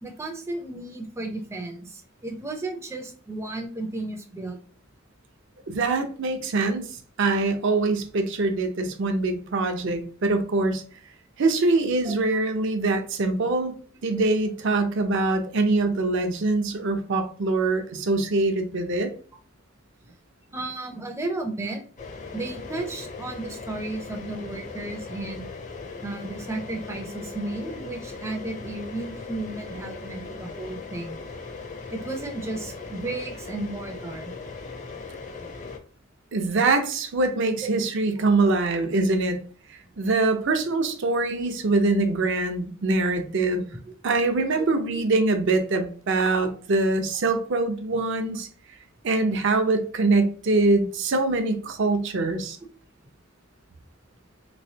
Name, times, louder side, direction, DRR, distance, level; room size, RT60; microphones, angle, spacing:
voice 1, 0.0-4.6 12.0-12.4 17.9-18.0 20.0-20.2 20.5-21.8 22.3-25.5 26.0-31.2 31.9-34.3 37.6-37.7 43.8-43.9 44.6-44.7 44.9-45.0, right 2 dB, 15° right, 2 dB, 0.5 m, -34 dB
voice 2, 5.7-6.8 7.2-10.8 11.4-13.7 14.0-19.1 36.3-39.4 40.0-43.6 44.0-48.5 49.0-52.6, right 3 dB, 60° right, 6 dB, 0.6 m, -23 dB
sound 1, 22.0-35.8, left 4 dB, 35° left, 0.6 m, -39 dB
3.4 x 3.1 x 2.7 m, 0.42 s
head